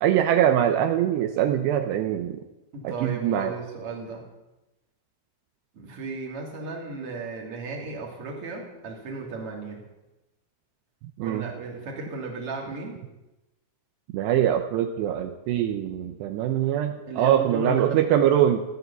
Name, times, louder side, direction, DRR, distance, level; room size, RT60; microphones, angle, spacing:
voice 1, 0.0-2.4 2.8-3.5 11.2-11.4 14.1-18.6, right 10 dB, 80° right, 5 dB, 2.8 m, -23 dB
voice 2, 2.7-4.2 5.7-9.8 11.2-13.0 17.1-18.1, right 3 dB, 35° right, -1 dB, 3.3 m, -35 dB
16.0 x 11.5 x 7.0 m, 1.0 s
omnidirectional pair, 5.2 m